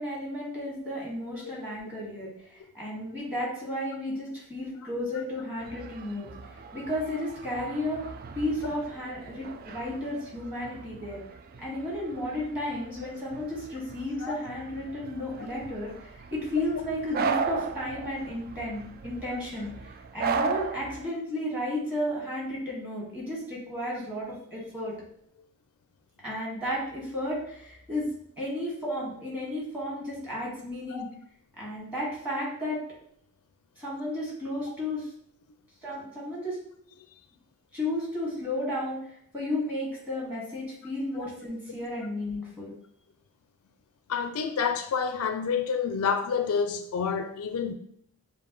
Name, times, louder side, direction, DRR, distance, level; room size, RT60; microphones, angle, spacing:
voice 1, 0.0-6.3 6.7-8.0 8.4-11.2 11.6-19.7 20.1-24.9 26.2-28.1 28.4-31.1 31.6-32.8 33.8-35.1 35.8-36.6 37.7-42.7, left 1 dB, 5° right, 1.7 m, -33 dB
sound 1, 5.6-21.1, right 5 dB, 40° right, 0.3 m, -37 dB
voice 2, 44.1-47.7, left 6 dB, 70° left, 0.4 m, -29 dB
6.8 x 2.5 x 3.0 m
head